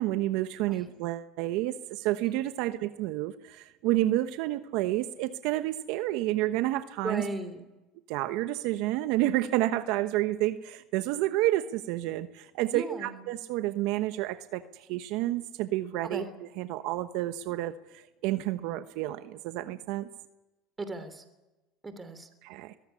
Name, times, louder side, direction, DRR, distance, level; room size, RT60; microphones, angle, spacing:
voice 1, 0.0-7.2 8.1-16.2 16.6-20.1 22.4-22.8, right 15 dB, 70° right, 11 dB, 1.1 m, -30 dB
voice 2, 7.0-7.7 12.7-13.2 16.0-16.3 20.8-21.2 21.8-22.3, right 3 dB, 15° right, 10 dB, 3.0 m, -37 dB
22.0 x 15.0 x 10.0 m, 1.0 s
supercardioid pair, 115°, 0 cm